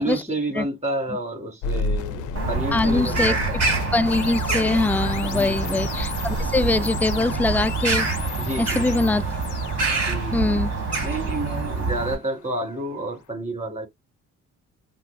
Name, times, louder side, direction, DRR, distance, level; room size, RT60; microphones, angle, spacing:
voice 1, 0.0-3.6 5.3-5.8 8.4-8.8 10.1-10.6 11.0-13.9, right 1 dB, 25° right, 3.2 m, -30 dB
sound 1, 1.6-12.6, left 5 dB, 80° left, 0.6 m, -34 dB
Bird vocalization bird call bird song, 2.4-12.2, right 3 dB, 55° right, 2.8 m, -26 dB
voice 2, 2.7-3.4 3.9-8.1 8.6-9.2 10.3-10.7, left 2 dB, 5° left, 0.3 m, -22 dB
5.7 x 2.4 x 2.4 m
cardioid pair, 90°, 30 cm